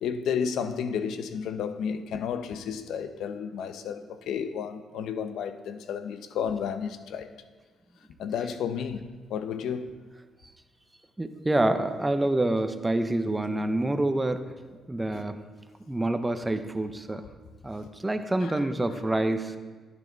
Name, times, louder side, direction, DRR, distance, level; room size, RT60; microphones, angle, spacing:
voice 1, 0.0-7.3 8.2-10.0 15.1-15.2 18.4-18.5, left 7 dB, 80° left, 0.7 m, -32 dB
voice 2, 11.2-14.5 14.9-15.4 15.9-17.2 17.6-19.6, right 1 dB, 15° right, 0.8 m, -27 dB
12.0 x 9.5 x 4.0 m
cardioid pair, 90°, 0 cm